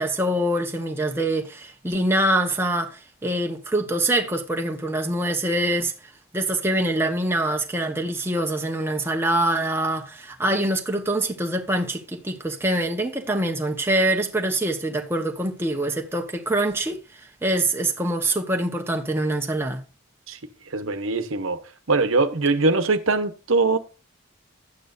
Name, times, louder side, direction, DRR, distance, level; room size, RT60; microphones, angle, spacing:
voice 1, 0.0-5.9 6.3-17.0 17.4-19.8, right 1 dB, 10° right, 1.0 m, -24 dB
voice 2, 20.7-21.6 21.9-23.8, right 3 dB, 75° right, 1.0 m, -22 dB
11.5 x 8.9 x 2.6 m
head